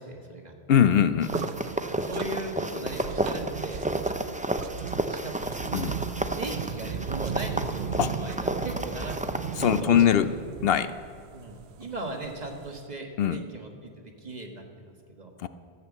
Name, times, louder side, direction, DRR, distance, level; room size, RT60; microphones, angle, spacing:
voice 1, 0.0-0.5 2.0-3.8 5.1-5.7 6.3-9.4 9.8-10.1 11.3-15.3, right 2 dB, 40° right, 2 dB, 1.5 m, -38 dB
voice 2, 0.7-1.3 5.7-6.0 8.0-8.1 9.6-10.3 10.6-10.9 13.2-13.4 15.4-15.5, left 9 dB, 70° left, 12 dB, 0.7 m, -21 dB
sound 1, 1.2-9.8, right 1 dB, 10° right, 0.4 m, -32 dB
sound 2, 1.2-12.9, right 9 dB, 90° right, 0.9 m, -45 dB
sound 3, 1.3-10.8, right 7 dB, 60° right, 0.8 m, -37 dB
13.5 x 8.3 x 7.3 m, 2.4 s
omnidirectional pair, 1.1 m